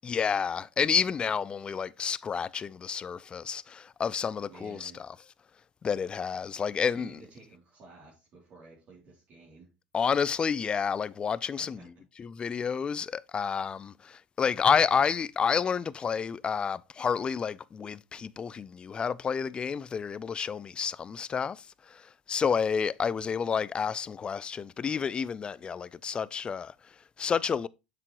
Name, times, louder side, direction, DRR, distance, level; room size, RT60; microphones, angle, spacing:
voice 1, 0.0-5.1 5.8-7.2 9.9-11.8 12.2-27.7, left 6 dB, 25° left, 0.4 m, -30 dB
voice 2, 4.5-5.0 6.8-9.7 11.6-11.9, right 4 dB, 45° right, 2.9 m, -52 dB
7.4 x 6.7 x 3.0 m
hypercardioid pair, 85°, 4 cm